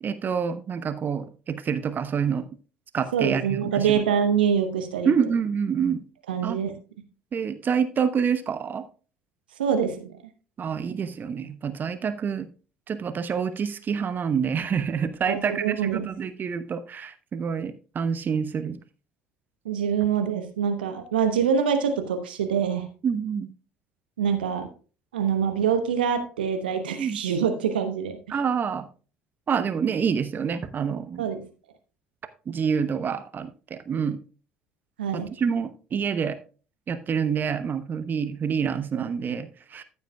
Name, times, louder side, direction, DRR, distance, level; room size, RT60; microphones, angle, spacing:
voice 1, 0.0-2.4 2.9-3.9 5.0-6.0 6.4-6.6 7.3-8.8 10.6-12.5 12.9-18.8 23.0-23.5 27.0-27.2 28.3-28.9 29.5-31.2 32.5-34.2 35.1-36.4 36.9-39.8, right 6 dB, 40° right, 12 dB, 0.9 m, -27 dB
voice 2, 3.1-5.1 6.3-6.7 9.6-10.2 15.3-16.1 19.6-22.9 24.2-24.7 25.1-28.2 31.2-31.4 35.0-35.3, right 7 dB, 80° right, 7 dB, 1.0 m, -25 dB
14.5 x 8.1 x 2.3 m, 0.35 s
figure-of-eight pair, 55°, 5 cm